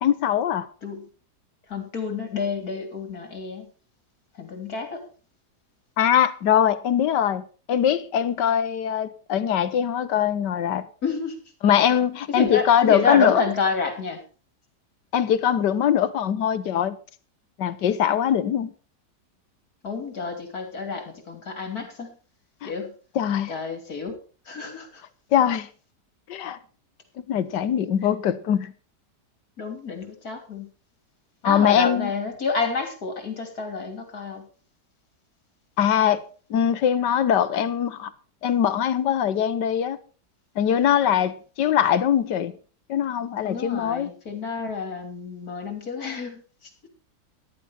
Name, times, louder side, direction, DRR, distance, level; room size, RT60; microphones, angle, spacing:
voice 1, 0.0-0.7 6.0-10.9 11.6-13.4 15.1-17.0 17.6-18.7 22.6-22.7 23.1-23.5 25.3-25.7 26.3-26.6 27.3-28.7 31.4-32.1 35.8-36.2 36.5-38.1 38.4-40.0 40.6-42.5 42.9-44.1, left 9 dB, 85° left, 1.6 m, -22 dB
voice 2, 1.7-3.7 4.3-5.0 11.0-11.4 12.3-14.2 19.8-22.2 22.6-22.9 23.5-24.1 24.4-25.0 29.6-30.7 31.4-34.5 43.4-46.7, left 4 dB, 60° left, 3.4 m, -29 dB
14.0 x 11.5 x 4.2 m
omnidirectional pair, 1.8 m